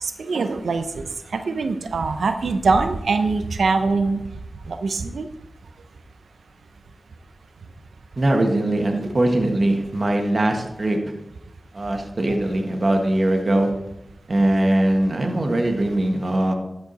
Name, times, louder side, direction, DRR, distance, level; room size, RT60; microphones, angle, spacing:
voice 1, 0.0-4.2 4.7-5.3, right 4 dB, 85° right, 8 dB, 0.7 m, -23 dB
voice 2, 8.2-11.0 11.7-13.7 14.3-16.5, right 1 dB, 50° right, 3 dB, 1.6 m, -21 dB
13.0 x 5.1 x 4.2 m, 0.85 s
cardioid pair, 45°, 0 cm